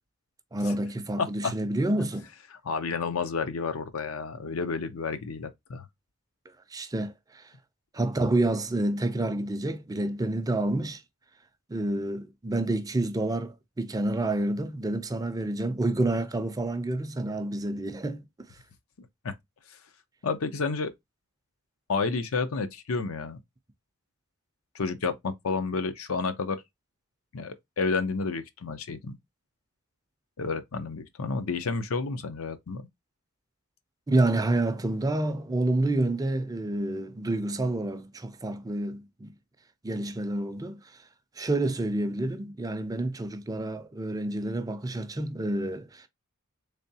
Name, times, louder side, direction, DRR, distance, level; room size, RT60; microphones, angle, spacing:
voice 1, 0.5-2.3 6.7-7.4 7.9-11.0 11.7-18.2 34.1-39.3 39.8-40.8 41.4-46.1, right 2 dB, 15° right, 0.4 m, -28 dB
voice 2, 1.2-1.5 2.6-5.9 19.2-19.3 20.2-20.9 21.9-23.4 24.7-26.6 27.3-29.2 30.4-32.8, left 4 dB, 80° left, 0.6 m, -30 dB
3.6 x 3.4 x 2.7 m
head